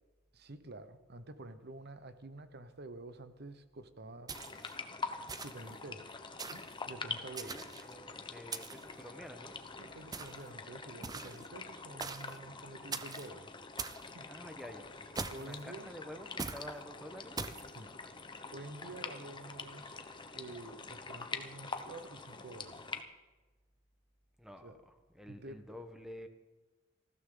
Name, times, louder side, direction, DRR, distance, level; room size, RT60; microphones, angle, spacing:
voice 1, 0.3-4.3 5.3-6.2 6.4-7.6 9.8-13.6 14.1-14.3 15.3-15.9 17.7-17.9 18.5-20.0 20.3-22.9 24.6-24.7 25.3-25.6, right 2 dB, 55° right, 11 dB, 1.0 m, -49 dB
sound 1, 4.3-23.0, left 4 dB, 25° left, 1.0 m, -45 dB
sound 2, 4.3-4.8 5.3-5.7 6.4-6.7 7.4-7.9 8.5-8.9 10.1-10.5 11.0-11.5 12.0-12.4 12.9-13.3 13.8-14.1 15.2-15.6 16.4-16.7 17.4-17.7, right 4 dB, 20° right, 0.6 m, -41 dB
voice 2, 7.4-9.6 11.1-11.3 14.3-17.9 24.4-26.3, equal, ahead, 6 dB, 1.2 m, -50 dB
20.0 x 15.0 x 3.9 m, 1.2 s
head